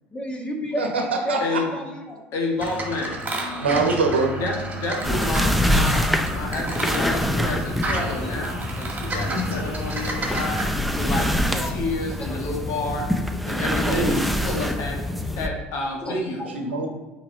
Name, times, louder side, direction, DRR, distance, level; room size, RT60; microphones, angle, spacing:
voice 1, 0.1-2.2 6.6-7.2 7.8-8.4 9.1-10.0 11.5-11.9 12.2-12.5 13.5-14.0 14.4-14.5 16.0-16.8, equal, 20° left, 1 dB, 1.5 m, -35 dB
voice 2, 1.3-1.6 3.6-4.3 13.8-14.2 16.5-16.9, right 3 dB, 85° right, 2 dB, 1.1 m, -23 dB
voice 3, 2.3-3.2 4.4-10.6 11.0-13.1 13.4-14.2 14.4-15.0 15.4-16.4, left 3 dB, 55° left, 0 dB, 1.8 m, -29 dB
sound 1, 2.6-10.6, right 1 dB, 25° right, 1.8 m, -31 dB
sound 2, 5.0-15.5, left 1 dB, ahead, 0.6 m, -25 dB
5.8 x 4.6 x 4.0 m, 1.1 s
hypercardioid pair, 65°, 6 cm